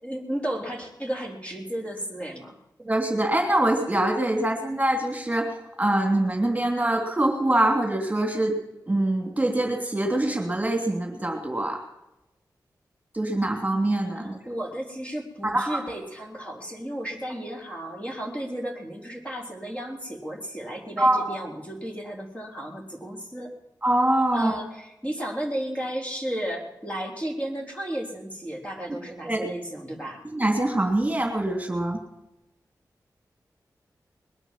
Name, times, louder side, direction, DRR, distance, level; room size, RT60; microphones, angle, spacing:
voice 1, 0.0-2.6 14.1-23.5 24.3-30.2, right 1 dB, 15° left, 0 dB, 4.0 m, -34 dB
voice 2, 2.8-8.5 8.9-11.8 13.1-14.4 15.4-16.0 21.0-21.2 23.8-24.6 29.2-29.4 30.2-32.0, right 1 dB, 20° right, 2 dB, 3.2 m, -24 dB
21.0 x 9.0 x 7.6 m, 0.91 s
cardioid pair, 50°, 7 cm